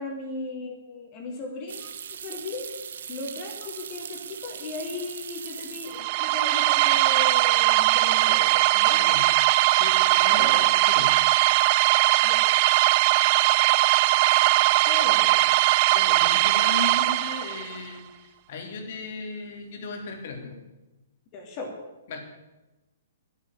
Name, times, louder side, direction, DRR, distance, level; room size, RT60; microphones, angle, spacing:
voice 1, 0.0-2.7 3.1-9.0 10.3-10.7 12.2-12.4 14.8-15.4 21.3-21.7, left 3 dB, 35° left, 1 dB, 3.1 m, -37 dB
sound 1, 1.7-6.4 6.6-7.3 7.6-7.7 10.4-10.8 11.1-11.6, right 8 dB, 60° right, 1.1 m, -40 dB
sound 2, 5.9-17.8, right 19 dB, 40° right, 0.4 m, -20 dB
voice 2, 8.9-9.4 9.7-11.2 15.9-20.6 22.1-22.2, left 3 dB, 50° left, 3 dB, 3.1 m, -36 dB
11.0 x 9.1 x 10.0 m, 1.0 s
figure-of-eight pair, 120°, 0 cm